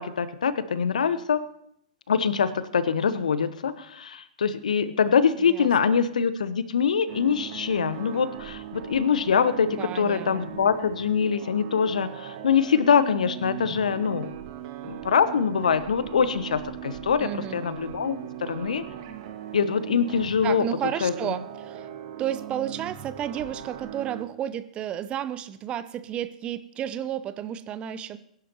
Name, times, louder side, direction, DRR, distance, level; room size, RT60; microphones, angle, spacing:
voice 1, 0.0-1.4 2.1-14.3 14.9-18.8 19.5-20.6 21.0-21.1, left 6 dB, 70° left, 14 dB, 0.9 m, -24 dB
voice 2, 5.5-6.0 9.8-10.7 17.2-17.6 20.4-21.9 22.2-28.2, right 10 dB, 25° right, 14 dB, 0.6 m, -32 dB
sound 1, 7.1-24.2, right 11 dB, 50° right, 1.7 m, -39 dB
21.5 x 11.0 x 3.0 m, 0.71 s
figure-of-eight pair, 110°, 4 cm